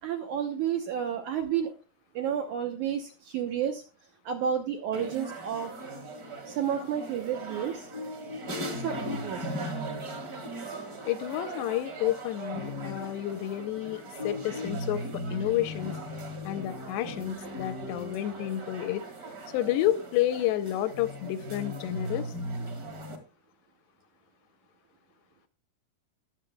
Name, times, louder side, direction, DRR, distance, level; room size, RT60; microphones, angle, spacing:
voice 1, 0.0-1.7 2.2-3.8 4.3-5.7 6.5-7.9 8.8-9.5, right 8 dB, 80° right, 5 dB, 1.7 m, -31 dB
sound 1, 4.9-23.2, equal, 40° right, 1.4 m, -38 dB
voice 2, 11.1-16.0 16.4-19.1 19.5-22.3, left 13 dB, 90° left, 12 dB, 2.9 m, -30 dB
19.5 x 7.5 x 2.3 m, 0.33 s
omnidirectional pair, 4.8 m